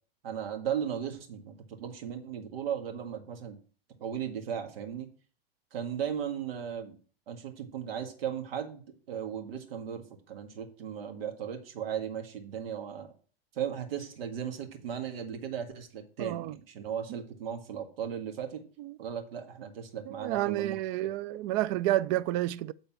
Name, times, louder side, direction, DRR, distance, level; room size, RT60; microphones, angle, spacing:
voice 1, 0.2-3.6 4.0-5.1 5.7-7.0 7.3-8.8 9.1-13.1 13.5-18.6 19.0-20.8 21.0-21.1, right 8 dB, 70° right, 1.8 m, -36 dB
voice 2, 16.2-16.6 17.1-17.2 18.8-19.0 20.1-22.7, right 15 dB, 40° right, 0.4 m, -30 dB
9.1 x 4.0 x 5.8 m
hypercardioid pair, 120°, 30 cm